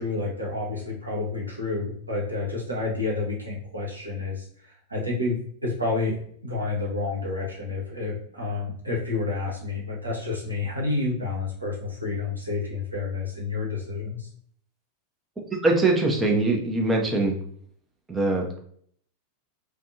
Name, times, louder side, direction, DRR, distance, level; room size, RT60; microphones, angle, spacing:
voice 1, 0.0-6.2 6.4-14.3, left 3 dB, 80° right, -3 dB, 0.8 m, -29 dB
voice 2, 15.6-17.3 18.1-18.6, right 2 dB, 15° right, 0 dB, 0.6 m, -22 dB
2.5 x 2.2 x 2.6 m, 0.62 s
figure-of-eight pair, 90°, 0 cm